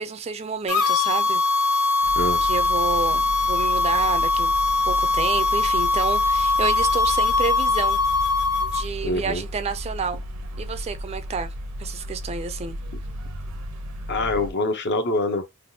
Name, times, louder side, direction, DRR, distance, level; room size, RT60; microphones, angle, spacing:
voice 1, 0.0-1.4 2.4-4.5 4.9-8.0 8.7-10.2 10.6-11.5 11.8-12.8, right 5 dB, 30° right, 0.3 m, -29 dB
sound 1, 0.7-8.8, left 3 dB, 85° left, 0.7 m, -21 dB
sound 2, 2.0-14.5, equal, 85° right, 0.7 m, -34 dB
voice 2, 9.0-9.4 14.1-15.5, left 2 dB, 50° left, 0.6 m, -24 dB
3.4 x 2.2 x 2.6 m
head